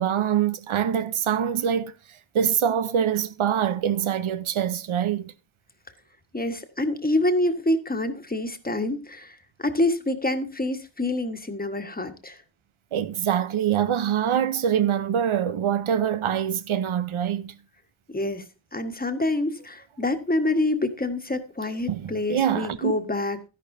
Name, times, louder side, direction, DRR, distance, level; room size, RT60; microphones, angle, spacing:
voice 1, 0.0-1.9 2.3-5.3 12.9-17.6 21.9-22.9, right 9 dB, 75° right, 0.9 m, -24 dB
voice 2, 6.3-12.4 18.1-18.4 18.7-23.4, left 2 dB, 20° left, 1.4 m, -26 dB
12.5 x 10.5 x 2.7 m
cardioid pair, 70°, 49 cm